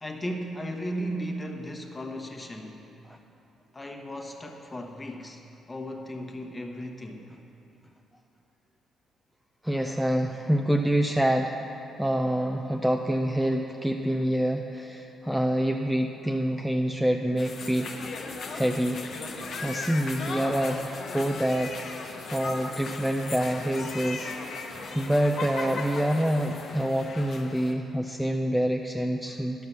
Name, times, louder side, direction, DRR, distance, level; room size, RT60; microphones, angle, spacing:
voice 1, 0.0-2.9 3.7-5.4 5.7-7.3, equal, 20° left, 3 dB, 1.1 m, -36 dB
voice 2, 9.6-17.9 18.5-19.0 19.6-21.9 22.3-29.6, right 1 dB, 5° right, 3 dB, 0.4 m, -27 dB
sound 1, 17.4-27.7, left 3 dB, 65° left, 1.0 m, -37 dB
11.0 x 5.8 x 6.7 m, 2.9 s
cardioid pair, 90°, 0 cm